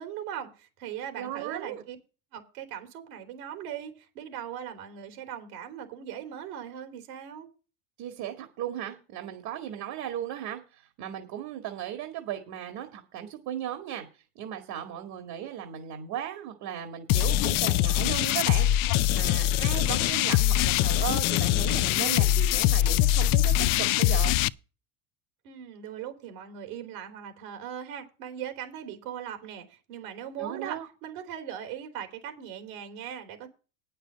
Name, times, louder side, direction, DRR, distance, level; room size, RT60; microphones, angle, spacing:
voice 1, 0.0-2.0 2.3-7.5 25.4-33.5, right 9 dB, 75° right, 3.2 m, -39 dB
voice 2, 1.2-1.8 8.0-14.1 14.4-18.7 19.1-24.3 30.4-30.9, right 10 dB, 55° right, 2.0 m, -36 dB
sound 1, 17.1-24.5, left 14 dB, 50° left, 0.5 m, -23 dB
9.1 x 6.7 x 7.9 m
supercardioid pair, 115°, 44 cm